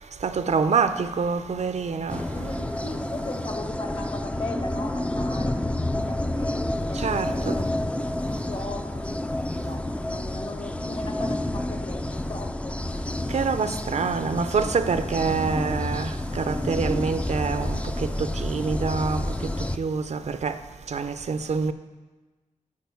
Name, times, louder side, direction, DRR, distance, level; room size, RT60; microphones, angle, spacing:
voice 1, 0.2-2.2 7.0-7.5 13.3-19.2 19.8-20.5 20.9-21.7, right 5 dB, 60° right, 0.4 m, -26 dB
sound 1, 2.1-19.8, left 1 dB, 10° left, 0.3 m, -29 dB
voice 2, 2.3-7.9 8.3-9.2 9.6-12.7 13.7-14.2, left 2 dB, 50° left, 1.3 m, -38 dB
9.3 x 4.9 x 6.8 m
wide cardioid pair, 105°, 13 cm